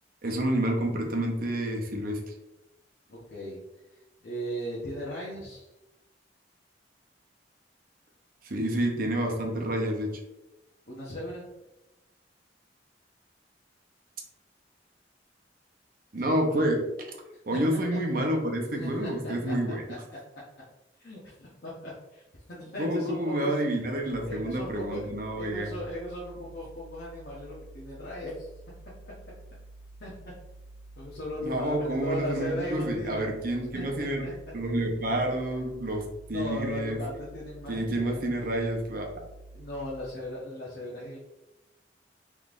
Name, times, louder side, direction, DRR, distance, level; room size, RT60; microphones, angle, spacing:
voice 1, 0.2-2.3 8.4-10.1 16.1-16.8 17.5-19.8 22.8-25.7 31.4-34.3 34.5-37.0 37.7-39.1, right 1 dB, 50° right, 1 dB, 0.7 m, -29 dB
voice 2, 3.1-3.6 4.2-5.7 10.9-11.5 16.2-16.4 18.7-19.3 21.0-22.2 22.5-23.5 24.3-25.0 25.4-28.5 30.0-30.1 31.0-33.3 33.7-34.3 36.3-38.2 39.5-41.2, equal, 60° left, -7 dB, 0.8 m, -37 dB
sound 1, 24.1-40.1, right 2 dB, 75° left, 1.4 m, -49 dB
3.6 x 3.2 x 2.5 m, 0.96 s
head